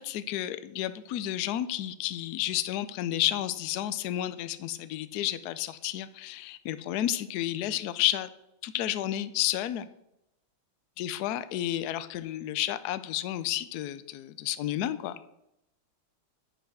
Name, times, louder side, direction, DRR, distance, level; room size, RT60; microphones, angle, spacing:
voice 1, 0.0-8.3 8.6-9.9 11.0-15.2, left 13 dB, 85° left, 14 dB, 0.8 m, -31 dB
10.0 x 5.6 x 6.1 m, 0.83 s
omnidirectional pair, 2.3 m